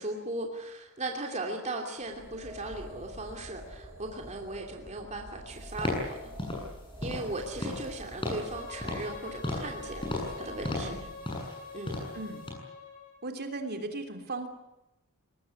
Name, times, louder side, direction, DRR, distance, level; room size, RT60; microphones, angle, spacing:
voice 1, 0.0-6.2 7.0-10.9 11.7-12.0, right 2 dB, 35° right, 2 dB, 2.8 m, -38 dB
sound 1, 2.0-11.1, right 1 dB, 15° right, 6.8 m, -46 dB
sound 2, 5.8-6.1 6.4-6.7 7.0-7.3 7.6-7.9 8.2-8.5 8.8-9.1 9.4-9.7 10.0-10.3 10.6-11.0 11.2-11.6 11.9-12.2 12.5-12.6, left 2 dB, 25° left, 7.7 m, -33 dB
Bowed string instrument, 8.0-13.2, left 3 dB, 45° left, 6.6 m, -45 dB
voice 2, 12.1-12.4 13.2-14.5, right 2 dB, 50° right, 5 dB, 3.2 m, -37 dB
23.0 x 19.5 x 9.7 m, 0.95 s
head